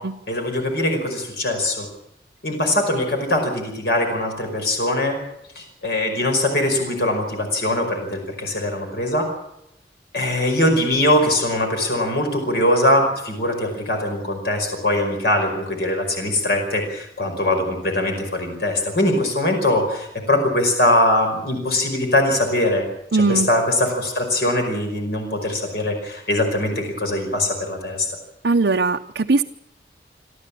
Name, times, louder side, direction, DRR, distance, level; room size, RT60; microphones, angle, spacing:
voice 1, 0.3-1.9 2.4-5.2 5.5-9.2 10.1-22.8 23.1-28.1, left 1 dB, 65° left, 3 dB, 5.2 m, -21 dB
voice 2, 23.1-23.5 28.4-29.4, right 3 dB, 75° right, 3 dB, 0.7 m, -19 dB
27.0 x 13.5 x 8.5 m, 0.84 s
head